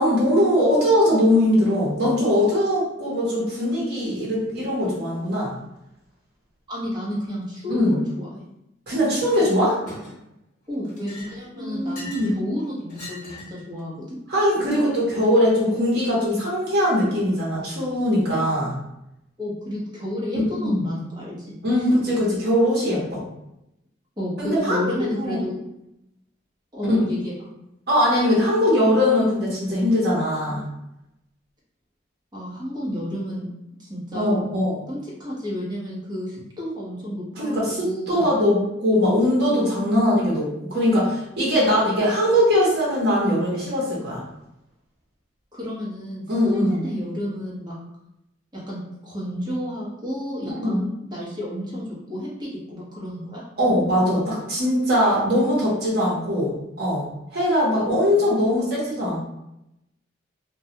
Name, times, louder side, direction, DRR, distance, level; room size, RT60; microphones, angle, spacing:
voice 1, 0.0-5.5 7.7-8.0 8.9-9.8 11.6-12.3 14.3-18.7 20.6-20.8 21.6-23.2 24.4-24.9 25.2-25.4 26.9-27.0 27.9-30.6 34.1-34.8 37.4-44.2 46.3-46.8 50.5-50.8 53.6-57.1 57.3-59.2, equal, 55° right, -5 dB, 0.9 m, -21 dB
voice 2, 6.7-8.4 10.7-14.2 19.4-21.5 24.2-25.5 26.7-27.3 32.3-33.5 33.8-34.4 34.9-38.3 45.5-47.8 48.5-53.4, equal, 20° right, -7 dB, 0.8 m, -31 dB
Chink clink, 9.2-9.5 9.9-10.4 10.8-12.3 12.9-13.6, left 2 dB, 40° left, 1.0 m, -40 dB
2.2 x 2.2 x 2.8 m, 0.86 s
head